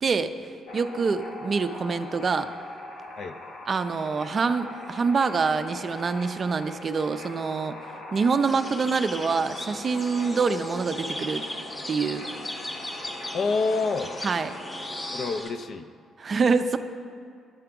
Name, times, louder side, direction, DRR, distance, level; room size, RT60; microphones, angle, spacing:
voice 1, 0.0-2.5 3.7-7.8 8.1-11.5 11.9-12.2 14.2-14.5 16.2-16.8, right 5 dB, 40° right, 10 dB, 0.4 m, -26 dB
sound 1, 0.7-15.4, left 1 dB, 90° left, 1.1 m, -41 dB
sound 2, 8.5-15.5, left 1 dB, 20° left, 0.8 m, -38 dB
voice 2, 13.3-14.1 15.1-15.9, left 4 dB, 55° left, 9 dB, 0.4 m, -27 dB
9.8 x 5.7 x 3.6 m, 2.3 s
cardioid pair, 90°, 0 cm